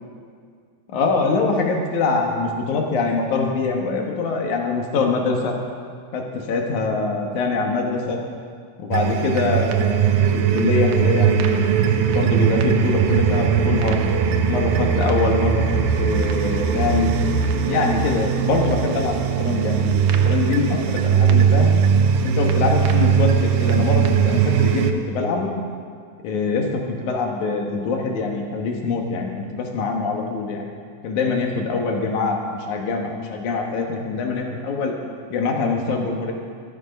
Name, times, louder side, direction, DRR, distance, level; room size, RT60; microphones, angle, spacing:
voice 1, 0.9-5.5 6.1-8.2 8.8-11.7 12.1-14.0 14.5-17.1 17.7-21.7 22.2-25.5 26.2-30.7 31.0-34.9 35.3-36.3, left 4 dB, 75° left, 2 dB, 2.8 m, -24 dB
sound 1, 8.9-24.9, right 7 dB, 75° right, 2.0 m, -19 dB
14.5 x 12.0 x 5.3 m, 2.1 s
omnidirectional pair, 3.5 m